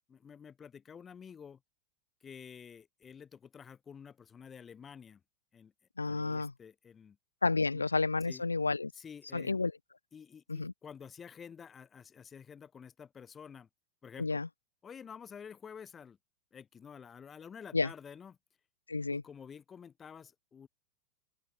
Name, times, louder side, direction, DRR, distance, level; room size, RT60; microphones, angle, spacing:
voice 1, 0.1-1.6 2.2-5.2 5.5-5.7 6.1-7.2 8.2-8.4 8.9-9.6 10.1-13.7 14.0-14.4 14.8-16.2 16.5-18.4 19.1-20.7, left 7 dB, 20° left, 3.6 m, -50 dB
voice 2, 6.0-6.5 7.4-8.9 9.3-9.7 10.5-10.7 14.2-14.5 17.7-17.9 18.9-19.2, left 3 dB, 80° left, 0.5 m, -31 dB
open air
figure-of-eight pair, 90°, 0 cm